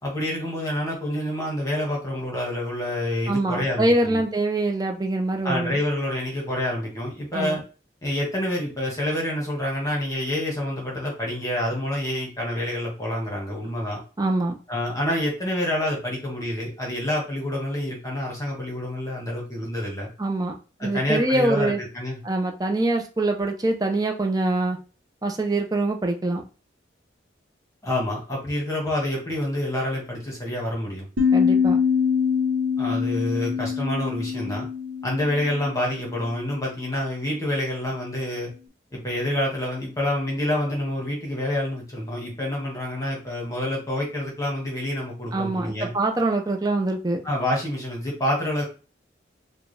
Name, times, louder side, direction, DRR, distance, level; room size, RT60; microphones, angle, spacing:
voice 1, 0.0-4.2 5.4-7.6 8.0-14.0 14.7-20.1 20.8-22.2 27.8-31.1 32.8-34.7 35.0-38.5 38.9-45.9 47.2-48.6, left 1 dB, 15° left, -2 dB, 1.4 m, -27 dB
voice 2, 3.3-5.8 7.3-7.6 14.2-14.6 20.2-20.5 20.8-21.8 22.2-24.8 25.2-26.4 31.3-31.8 45.3-47.2, right 2 dB, 20° right, 3 dB, 0.6 m, -24 dB
sound 1, 31.2-36.3, left 6 dB, 80° right, 1.0 m, -24 dB
4.7 x 2.3 x 3.3 m, 0.34 s
head